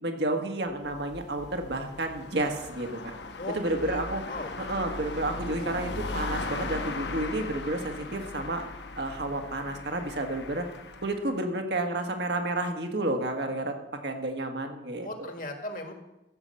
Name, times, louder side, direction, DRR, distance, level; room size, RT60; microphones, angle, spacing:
voice 1, 0.0-3.1 3.5-4.2 4.6-8.6 9.0-10.6 11.0-13.8 14.0-15.3, right 2 dB, 70° right, 4 dB, 1.7 m, -31 dB
sound 1, 0.7-11.3, left 3 dB, 75° left, 1.1 m, -38 dB
voice 2, 3.8-4.5 15.0-15.9, left 1 dB, 50° left, 5 dB, 1.7 m, -37 dB
14.0 x 5.7 x 7.6 m, 0.93 s
head